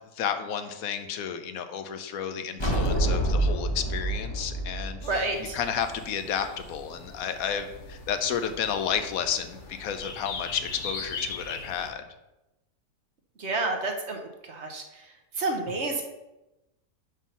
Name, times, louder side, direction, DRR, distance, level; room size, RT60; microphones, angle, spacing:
voice 1, 0.1-12.0, left 8 dB, 75° left, 8 dB, 1.1 m, -32 dB
sound 1, 2.6-6.0, right 1 dB, 20° left, 1.0 m, -27 dB
sound 2, 5.0-11.9, left 4 dB, 55° left, 1.2 m, -41 dB
voice 2, 5.0-5.6 13.4-14.2 14.5-14.8 15.4-16.0, right 2 dB, 55° right, 4 dB, 1.1 m, -29 dB
5.5 x 5.2 x 5.5 m, 0.98 s
omnidirectional pair, 1.5 m